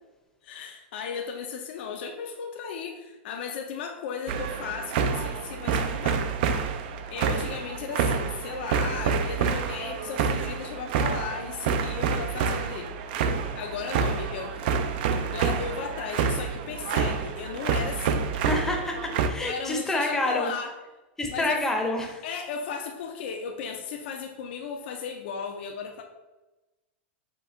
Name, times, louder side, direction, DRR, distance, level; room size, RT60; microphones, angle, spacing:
voice 1, 0.4-6.3 7.1-12.9 13.5-14.6 15.3-18.3 19.4-20.8 21.3-21.7 22.2-26.0, left 6 dB, 60° left, 3 dB, 0.5 m, -35 dB
sound 1, 4.3-19.3, right 6 dB, 55° right, 0.4 m, -28 dB
voice 2, 18.4-20.5 21.2-22.2, left 2 dB, 5° left, 2 dB, 0.6 m, -28 dB
5.1 x 2.3 x 3.8 m, 1.1 s
supercardioid pair, 145°, 6 cm